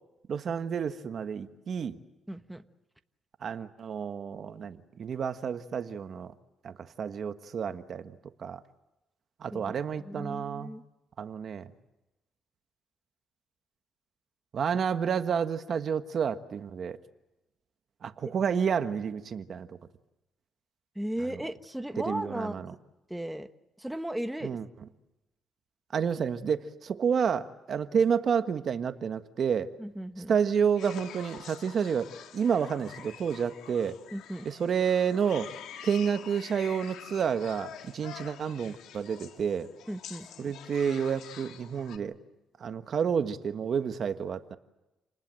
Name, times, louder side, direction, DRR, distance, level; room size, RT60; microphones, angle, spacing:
voice 1, 0.3-2.0 3.4-6.3 6.6-8.1 8.4-8.6 9.4-10.7 11.2-11.7 14.5-17.0 18.0-19.8 22.0-22.7 24.4-24.6 25.9-29.7 30.3-34.0 34.4-35.5 35.8-39.7 40.4-42.2 42.6-44.6, right 7 dB, 55° right, 9 dB, 1.4 m, -30 dB
voice 2, 2.3-2.6 9.5-9.7 10.0-10.8 20.9-22.8 23.1-23.5 23.8-24.6 29.8-30.3 34.1-34.5 39.9-40.5, right 1 dB, 5° right, 8 dB, 1.3 m, -36 dB
sound 1, 30.8-42.0, left 9 dB, 85° left, 1.9 m, -47 dB
29.5 x 20.0 x 7.7 m, 0.99 s
cardioid pair, 90°, 0 cm